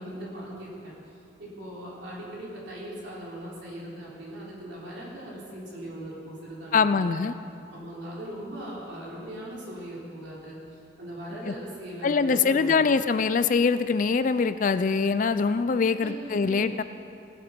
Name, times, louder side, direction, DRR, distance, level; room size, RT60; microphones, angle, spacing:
voice 1, 0.0-7.2 7.7-13.0 16.0-16.6, right 1 dB, 70° right, -5 dB, 3.6 m, -39 dB
voice 2, 6.7-7.3 11.5-11.6 12.0-16.8, left 5 dB, 45° left, 13 dB, 0.4 m, -23 dB
17.5 x 8.6 x 5.2 m, 2.5 s
head